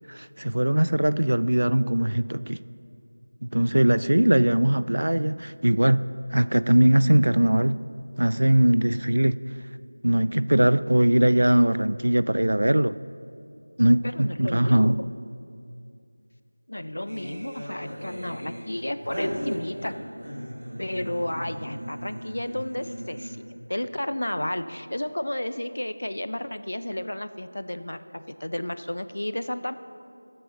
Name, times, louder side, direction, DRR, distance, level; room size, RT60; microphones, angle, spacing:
voice 1, 0.1-2.6 3.4-7.8 8.2-9.4 10.0-13.0 13.8-15.0, right 1 dB, 75° right, 0.4 m, -21 dB
voice 2, 14.0-15.1 16.7-20.0 20.8-23.4 23.7-29.7, left 1 dB, 65° left, 0.6 m, -32 dB
sound 1, 17.1-23.6, equal, 20° right, 2.0 m, -37 dB
19.0 x 7.8 x 4.0 m
figure-of-eight pair, 180°, 0 cm